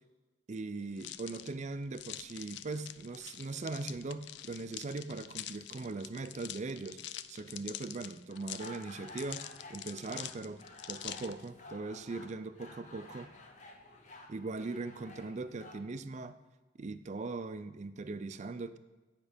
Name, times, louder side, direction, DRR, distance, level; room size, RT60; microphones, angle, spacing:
voice 1, 0.5-7.0 7.3-10.6 10.9-13.3 14.3-16.4 16.8-18.8, right 3 dB, 40° right, 12 dB, 0.4 m, -40 dB
sound 1, 1.0-11.5, left 12 dB, 75° left, 0.4 m, -46 dB
sound 2, 8.3-15.8, left 2 dB, 45° left, 1.0 m, -52 dB
9.4 x 5.3 x 5.1 m, 1.2 s
head